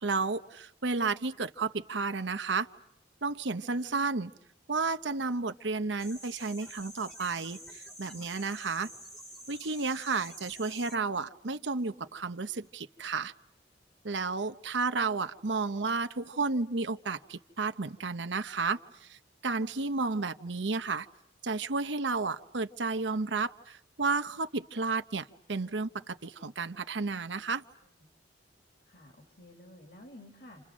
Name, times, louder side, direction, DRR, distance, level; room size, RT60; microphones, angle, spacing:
voice 1, 0.0-2.7 3.2-4.3 4.7-8.9 9.5-13.3 14.0-21.1 21.4-27.6, right 4 dB, 75° right, 9 dB, 1.0 m, -32 dB
sound 1, 6.0-10.9, equal, 5° left, 1.7 m, -48 dB
voice 2, 7.8-8.3 27.8-28.1 28.8-30.7, left 1 dB, 60° left, 2 dB, 4.1 m, -53 dB
29.5 x 29.0 x 6.3 m, 0.75 s
head